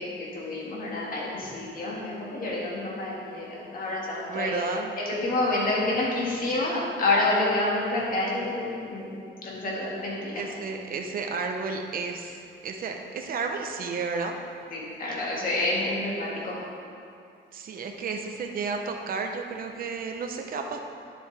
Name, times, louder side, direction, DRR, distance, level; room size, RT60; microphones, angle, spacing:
voice 1, 0.0-4.6 5.0-9.2 9.4-10.3 14.7-16.5, left 2 dB, 45° left, -4 dB, 1.9 m, -28 dB
voice 2, 4.3-4.9 10.4-14.4 17.5-20.8, right 4 dB, 50° right, 4 dB, 0.7 m, -32 dB
9.7 x 7.5 x 3.4 m, 2.4 s
cardioid pair, 165°, 20 cm